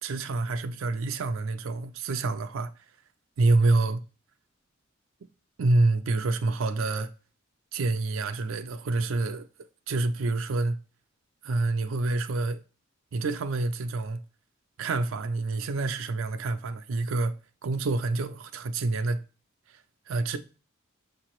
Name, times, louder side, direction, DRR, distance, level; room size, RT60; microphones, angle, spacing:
voice 1, 0.0-2.7 3.4-4.0 5.6-7.1 7.7-9.4 9.9-10.8 11.4-12.6 13.1-14.2 14.8-17.3 17.6-19.2 20.1-20.4, right 2 dB, 80° right, 0.5 m, -27 dB
5.9 x 2.9 x 2.9 m
head